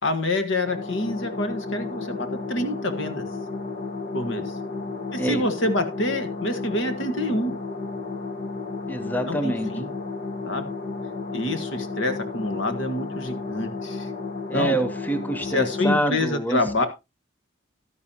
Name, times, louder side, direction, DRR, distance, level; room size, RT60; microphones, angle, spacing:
voice 1, 0.0-3.2 4.1-4.5 5.1-7.5 9.2-9.9 10.4-10.7 11.3-14.1 14.5-14.8 15.4-16.9, left 2 dB, 70° left, 9 dB, 1.5 m, -27 dB
sound 1, 0.6-16.0, left 3 dB, 50° left, 1.3 m, -33 dB
voice 2, 8.9-9.7 14.5-16.9, right 1 dB, 10° left, 9 dB, 0.7 m, -26 dB
12.0 x 10.0 x 2.8 m, 0.24 s
head